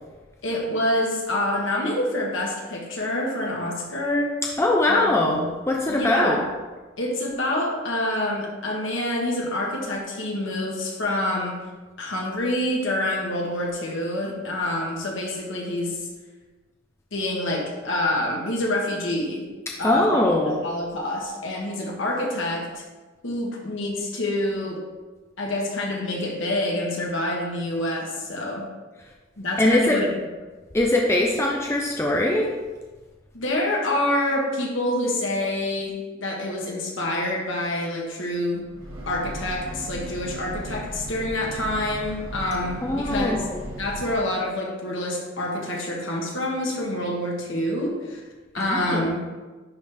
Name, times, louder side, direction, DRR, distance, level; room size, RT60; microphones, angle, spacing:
voice 1, 0.4-4.3 4.9-5.5 5.9-6.5 7.0-11.6 12.0-16.1 17.1-19.4 19.8-22.8 23.2-24.8 25.4-28.7 29.4-30.1 33.3-38.6 39.1-43.4 43.8-48.2 48.5-49.2, left 1 dB, 65° left, -1 dB, 1.5 m, -27 dB
voice 2, 4.4-6.4 19.8-20.6 29.6-30.0 30.7-32.5 42.8-43.6 48.6-49.1, left 1 dB, 10° left, -1 dB, 0.5 m, -22 dB
Breathing / Train, 38.5-44.3, right 1 dB, 80° right, 1.6 m, -36 dB
10.5 x 4.0 x 3.5 m, 1.3 s
head